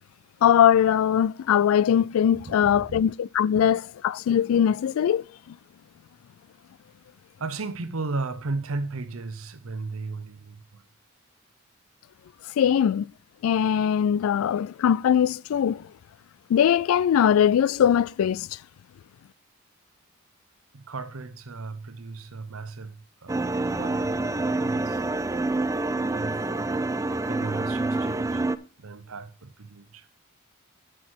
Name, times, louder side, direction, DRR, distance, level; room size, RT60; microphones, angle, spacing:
voice 1, 0.4-5.6 12.6-13.1 13.4-15.9 16.5-18.6, left 9 dB, 80° left, 0.3 m, -21 dB
voice 2, 2.3-3.0 7.4-10.8 20.7-25.0 26.1-26.9 27.3-28.4 28.8-30.1, right 3 dB, 90° right, 0.9 m, -35 dB
sound 1, 23.3-28.6, right 2 dB, 15° right, 0.4 m, -27 dB
9.3 x 6.2 x 4.4 m
head